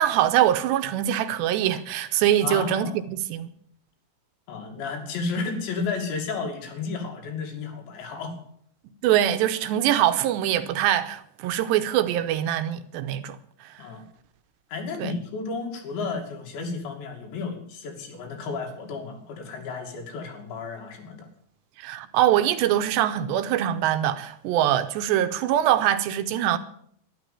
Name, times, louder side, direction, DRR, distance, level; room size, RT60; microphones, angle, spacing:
voice 1, 0.0-3.5 9.0-13.4 15.0-15.1 21.8-26.6, right 11 dB, 80° right, 3.0 m, -23 dB
voice 2, 2.4-3.0 4.5-8.4 13.8-14.0 14.7-21.3, left 4 dB, 80° left, 4.9 m, -32 dB
12.5 x 11.0 x 8.5 m
omnidirectional pair, 5.1 m